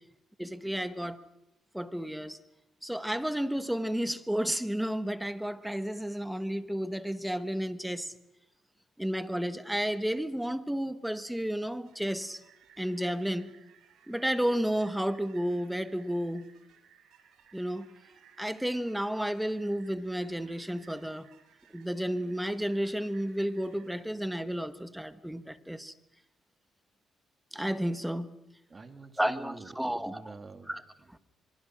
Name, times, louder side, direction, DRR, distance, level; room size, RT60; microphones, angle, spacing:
voice 1, 0.4-1.2 1.7-2.4 2.8-8.1 9.0-12.4 12.8-13.5 14.1-16.5 17.5-17.9 18.4-21.3 21.7-25.9 27.5-28.3 29.2-30.2 30.7-30.8, equal, 5° right, 1.4 m, -32 dB
sound 1, 11.8-24.1, right 8 dB, 80° right, 6.4 m, -60 dB
voice 2, 28.7-31.2, right 3 dB, 30° right, 2.9 m, -48 dB
26.5 x 23.5 x 6.3 m
cardioid pair, 90°, 0 cm